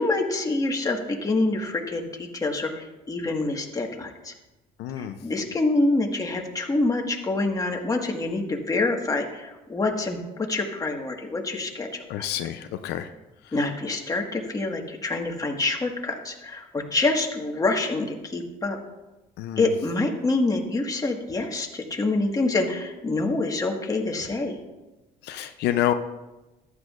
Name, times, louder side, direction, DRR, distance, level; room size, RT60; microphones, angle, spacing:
voice 1, 0.0-4.3 5.0-12.3 13.5-18.8 19.6-24.6, left 2 dB, 20° left, 1 dB, 1.6 m, -26 dB
voice 2, 4.8-5.2 12.1-13.1 13.4-13.6 19.4-19.7 25.2-25.9, left 12 dB, 80° left, 8 dB, 0.6 m, -28 dB
14.5 x 11.0 x 2.5 m, 1.1 s
cardioid pair, 110°, 17 cm